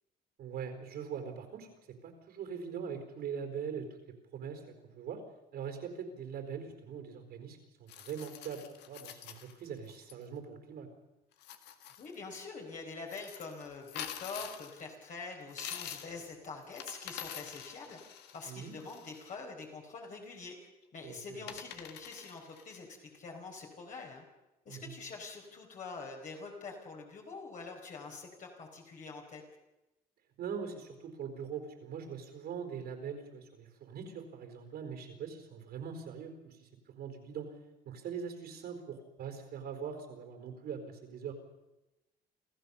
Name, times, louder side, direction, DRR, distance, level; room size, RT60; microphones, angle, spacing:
voice 1, 0.4-1.7 2.0-3.9 4.3-5.2 5.5-10.9 18.5-18.7 21.0-21.2 21.5-21.6 24.7-24.9 30.4-36.7 37.0-37.5 37.8-41.3, right 7 dB, 70° right, 6 dB, 4.4 m, -42 dB
sound 1, 7.9-10.1 11.3-12.2 13.1-14.9 15.5-16.2 16.6-19.4 20.8-20.9 21.5-22.8, left 10 dB, 85° left, 1.8 m, -46 dB
voice 2, 12.0-18.0 18.3-24.2 24.6-29.4, left 4 dB, 50° left, 0 dB, 4.4 m, -45 dB
27.0 x 14.5 x 7.1 m, 0.98 s
cardioid pair, 110°, 17 cm